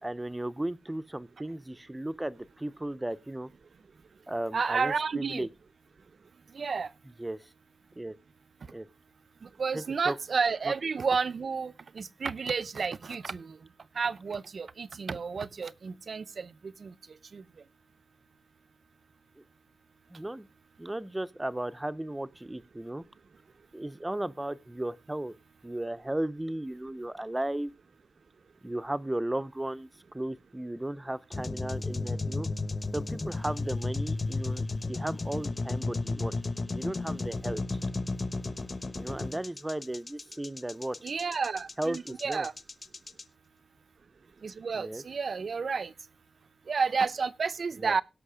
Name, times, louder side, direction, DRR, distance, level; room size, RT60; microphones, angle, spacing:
voice 1, 0.0-3.5 4.3-5.5 7.0-7.5 8.0-8.1 8.7-8.9 9.7-10.2 10.6-10.7 19.4-19.5 20.1-20.5 20.8-23.0 23.7-25.3 25.6-27.7 28.6-32.5 32.9-36.3 36.7-37.8 38.9-41.0 41.8-42.5 44.7-45.0 47.8-48.0, right 1 dB, 10° right, 0.5 m, -35 dB
voice 2, 4.5-5.5 6.6-6.9 9.6-13.6 14.0-16.5 16.8-16.9 17.3-17.4 41.0-42.5 44.4-45.9 46.7-48.0, right 5 dB, 60° right, 0.6 m, -31 dB
sound 1, 31.3-43.2, left 3 dB, 30° left, 1.1 m, -33 dB
17.0 x 6.2 x 4.9 m
wide cardioid pair, 160°, 0 cm